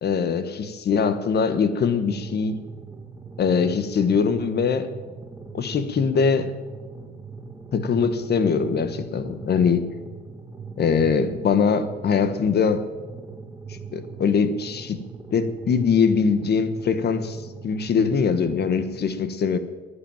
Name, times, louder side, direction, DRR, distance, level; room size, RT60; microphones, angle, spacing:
voice 1, 0.0-0.4 0.9-2.6 3.4-4.9 5.5-6.5 7.7-9.8 10.8-12.8 13.9-15.0 15.3-19.6, left 6 dB, 55° left, 11 dB, 1.3 m, -22 dB
sound 1, 2.1-19.0, right 5 dB, 15° right, 1.9 m, -40 dB
11.0 x 10.0 x 8.9 m, 1.4 s
cardioid pair, 90°, 20 cm